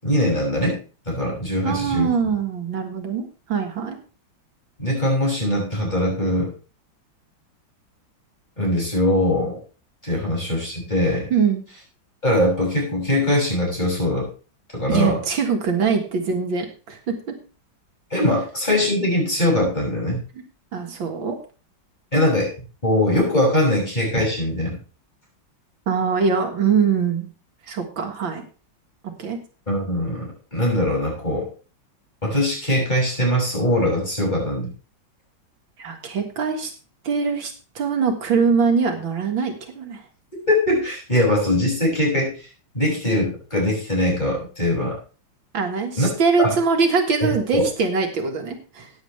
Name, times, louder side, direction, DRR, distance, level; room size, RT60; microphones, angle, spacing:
voice 1, 0.0-0.8 1.1-2.1 4.8-6.5 8.6-9.6 10.0-11.2 12.2-14.3 14.7-15.2 18.1-20.2 22.1-22.5 22.8-24.8 29.7-31.5 32.2-34.7 40.5-42.3 42.7-45.0 46.0-46.1 46.4-46.6 47.2-47.6, left 1 dB, 20° left, -2 dB, 6.7 m, -21 dB
voice 2, 1.6-4.0 11.3-11.6 14.9-17.4 20.7-21.4 25.9-27.3 27.7-28.4 29.0-29.4 35.8-36.7 37.0-40.0 45.5-48.9, right 5 dB, 75° right, 3 dB, 2.4 m, -23 dB
15.5 x 9.5 x 3.3 m, 0.36 s
omnidirectional pair, 2.1 m